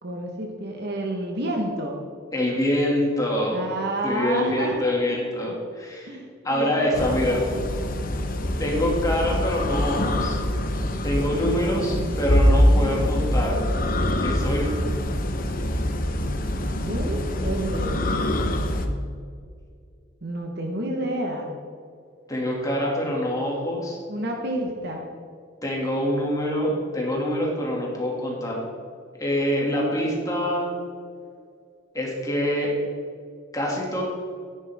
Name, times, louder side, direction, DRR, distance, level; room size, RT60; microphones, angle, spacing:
voice 1, 0.0-2.0 3.5-5.0 5.4-5.5 6.1-7.7 8.6-9.1 11.8-12.2 16.7-18.0 20.2-21.5 23.0-23.1 24.1-25.0, right 1 dB, 60° right, 1 dB, 1.4 m, -30 dB
voice 2, 2.3-3.6 4.0-6.2 6.4-7.4 8.6-10.4 11.0-13.6 14.2-14.7 22.3-24.0 25.6-28.6 29.2-30.7 31.9-32.7 33.5-34.0, left 1 dB, 20° left, -3 dB, 2.5 m, -25 dB
sound 1, 6.9-18.9, left 1 dB, 45° left, 1.0 m, -24 dB
13.5 x 10.0 x 3.7 m, 2.2 s
head